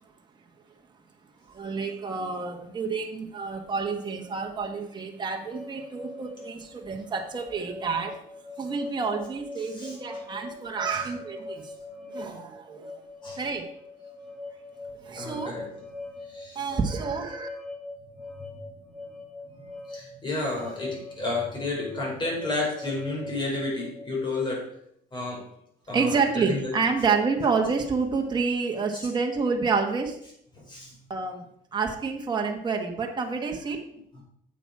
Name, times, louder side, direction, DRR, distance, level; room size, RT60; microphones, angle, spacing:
voice 1, 1.5-8.2 8.6-11.7 12.1-13.0 13.4-13.6 15.0-15.6 16.5-17.5 25.9-30.2 31.1-31.4 31.7-33.8, right 5 dB, 25° right, 2 dB, 1.2 m, -28 dB
sound 1, 5.5-24.2, left 2 dB, ahead, 1.1 m, -42 dB
voice 2, 15.2-15.7 16.3-16.6 19.9-24.6 25.1-25.4 25.9-26.7 30.7-30.9 34.2-34.3, left 2 dB, 25° left, -2 dB, 4.6 m, -31 dB
8.8 x 7.5 x 4.8 m, 0.72 s
cardioid pair, 130°, 17 cm